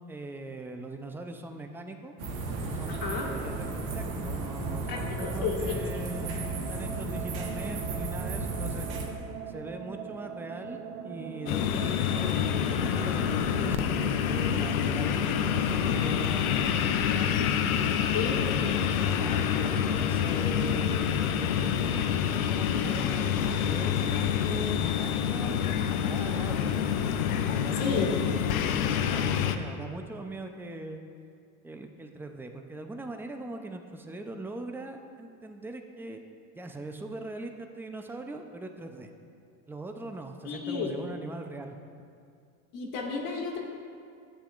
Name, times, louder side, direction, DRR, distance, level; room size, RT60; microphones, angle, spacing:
voice 1, 0.0-2.1 2.7-6.4 6.7-8.9 9.5-17.5 18.4-25.6 26.0-26.9 27.5-28.6 28.9-31.0 31.6-36.2 36.5-39.1 39.7-41.8, right 2 dB, 5° right, 5 dB, 0.6 m, -41 dB
sound 1, 2.2-9.1, right 2 dB, 75° right, 1.5 m, -34 dB
sound 2, 2.8-16.2, right 8 dB, 50° right, 0.7 m, -42 dB
voice 2, 2.9-3.3 4.9-5.6 18.1-18.4 27.8-28.1 40.4-40.9 42.7-43.6, left 5 dB, 55° left, -1 dB, 1.7 m, -32 dB
sound 3, 11.5-29.6, left 8 dB, 90° left, 0.6 m, -27 dB
12.5 x 8.6 x 2.6 m, 2.4 s
hypercardioid pair, 80°, 41 cm